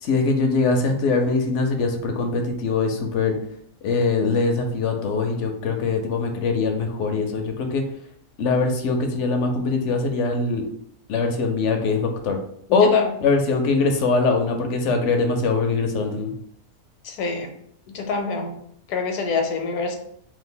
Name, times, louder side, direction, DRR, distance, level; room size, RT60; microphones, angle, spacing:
voice 1, 0.0-3.4 3.8-7.8 8.4-10.6 11.1-12.4 12.7-12.9 13.2-16.3, left 4 dB, 65° left, 4 dB, 0.8 m, -22 dB
voice 2, 12.7-13.1 17.0-17.5 17.9-18.6 18.9-20.0, left 5 dB, 85° left, 4 dB, 1.1 m, -25 dB
2.7 x 2.4 x 3.7 m, 0.67 s
omnidirectional pair, 1.5 m